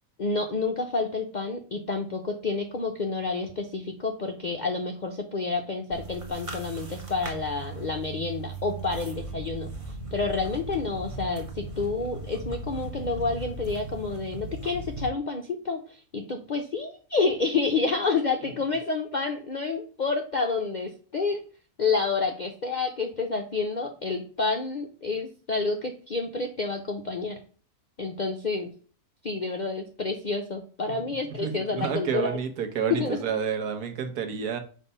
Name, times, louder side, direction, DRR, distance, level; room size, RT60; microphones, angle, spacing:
voice 1, 0.2-9.7 10.1-21.4 21.8-27.4 28.0-28.7 29.2-32.4 32.9-33.2, left 4 dB, 60° left, 3 dB, 0.4 m, -29 dB
sound 1, 5.9-15.1, right 3 dB, 25° right, 0.9 m, -38 dB
voice 2, 31.4-34.6, right 7 dB, 85° right, 7 dB, 1.5 m, -29 dB
5.4 x 3.3 x 5.4 m, 0.40 s
omnidirectional pair, 1.6 m